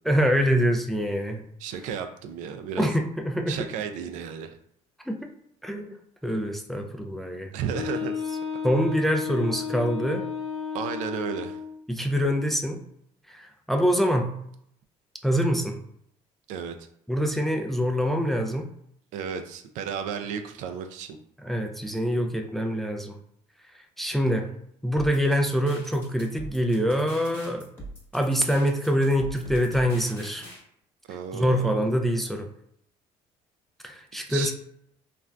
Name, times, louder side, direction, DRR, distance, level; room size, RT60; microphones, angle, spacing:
voice 1, 0.0-1.4 2.8-3.6 5.1-5.3 5.6-5.9 6.2-7.5 8.6-10.3 11.9-12.8 13.3-14.3 15.2-15.8 17.1-18.7 21.4-23.1 24.0-24.5 24.8-27.6 28.1-30.5 31.3-32.5 33.8-34.5, equal, ahead, 3 dB, 0.3 m, -25 dB
voice 2, 1.6-2.9 3.5-4.6 7.5-8.2 10.7-11.6 16.5-16.7 19.1-21.2 31.1-31.8 34.3-34.5, right 7 dB, 75° right, 7 dB, 0.4 m, -33 dB
Wind instrument woodwind instrument, 7.7-11.8, left 6 dB, 50° left, 0.6 m, -33 dB
sound 1, 25.0-30.6, right 1 dB, 20° left, 1.0 m, -42 dB
3.2 x 2.5 x 2.2 m, 0.70 s
cardioid pair, 120°, 13 cm